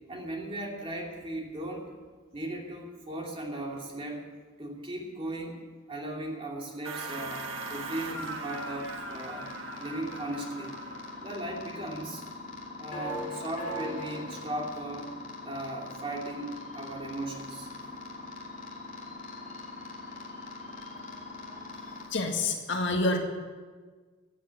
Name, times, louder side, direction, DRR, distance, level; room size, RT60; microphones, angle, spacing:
voice 1, 0.1-1.9 2.3-4.3 4.6-5.6 5.9-9.5 9.8-10.8 11.2-12.2 12.8-15.1 15.4-17.9, right 1 dB, 25° right, -1 dB, 2.7 m, -37 dB
sound 1, 6.8-11.4, right 4 dB, 70° right, 1.4 m, -40 dB
sound 2, 7.1-22.1, left 2 dB, 35° left, 2.8 m, -41 dB
voice 2, 22.1-23.2, left 2 dB, 60° left, 3 dB, 1.9 m, -27 dB
16.0 x 8.4 x 9.9 m, 1.5 s
head